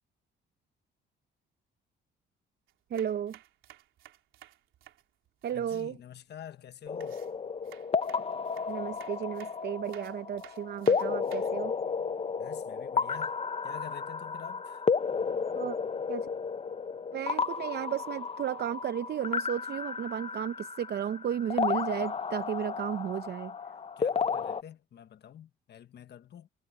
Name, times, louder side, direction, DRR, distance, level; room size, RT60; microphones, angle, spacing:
sound 1, 2.7-5.9 7.0-11.6, right 13 dB, 85° right, 3.3 m, -55 dB
voice 1, 2.9-3.4 5.4-6.0 8.7-11.7 15.6-15.8 16.1-16.3 17.1-23.5, right 9 dB, 55° right, 0.7 m, -33 dB
voice 2, 5.5-7.2 12.4-13.3 13.6-14.9 24.0-26.5, left 9 dB, 60° left, 1.3 m, -48 dB
sound 2, 6.9-24.6, left 5 dB, 30° left, 0.8 m, -33 dB
cardioid pair, 90°, 20 cm